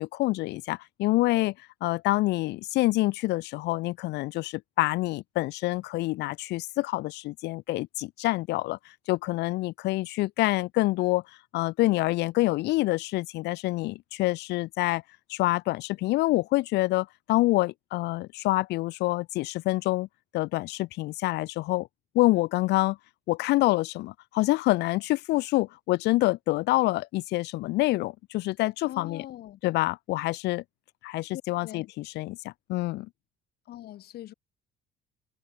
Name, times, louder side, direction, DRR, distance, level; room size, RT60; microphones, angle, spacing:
voice 1, 0.0-1.5 1.8-11.2 11.5-15.0 15.3-20.1 20.3-21.9 22.1-23.0 23.3-29.2 29.6-30.6 31.0-33.1, left 19 dB, 85° left, 1.3 m, -27 dB
voice 2, 28.8-29.6 31.3-31.9 33.7-34.3, left 13 dB, 70° left, 6.3 m, -42 dB
cardioid pair, 110°, 17 cm